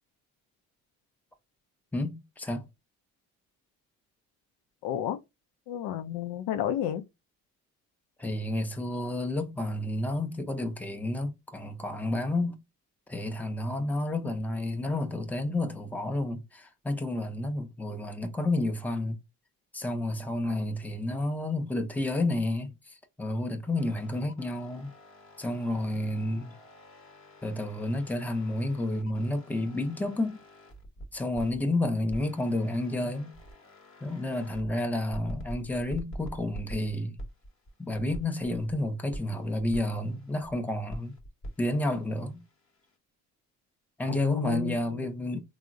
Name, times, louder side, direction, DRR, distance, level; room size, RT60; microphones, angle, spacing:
voice 1, 1.9-2.7 8.2-12.6 13.1-19.2 19.7-24.9 25.4-26.5 27.4-30.4 31.1-33.3 34.0-37.2 37.8-41.2 41.6-42.4 44.0-45.4, left 1 dB, 5° left, 0.6 m, -30 dB
voice 2, 4.8-5.2 5.7-7.0 44.1-45.1, left 10 dB, 75° left, 0.5 m, -31 dB
sound 1, 23.7-31.6 32.1-34.7 35.1-38.8 39.1-40.5 40.9-43.0, equal, 35° left, 0.9 m, -46 dB
3.6 x 2.1 x 2.5 m
supercardioid pair, 65°, 37 cm